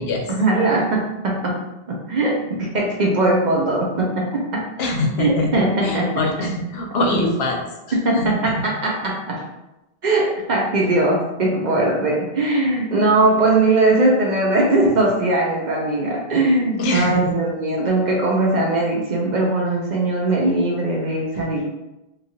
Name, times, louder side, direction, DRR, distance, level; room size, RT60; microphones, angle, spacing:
voice 1, 0.3-1.6 1.9-4.7 5.2-6.3 7.9-9.4 10.0-21.7, right 2 dB, 55° right, -2 dB, 0.6 m, -20 dB
voice 2, 4.8-5.5 5.8-7.6 7.9-8.6 16.8-17.3, left 1 dB, 80° left, 1 dB, 0.8 m, -23 dB
3.0 x 2.4 x 2.7 m, 0.95 s
omnidirectional pair, 1.0 m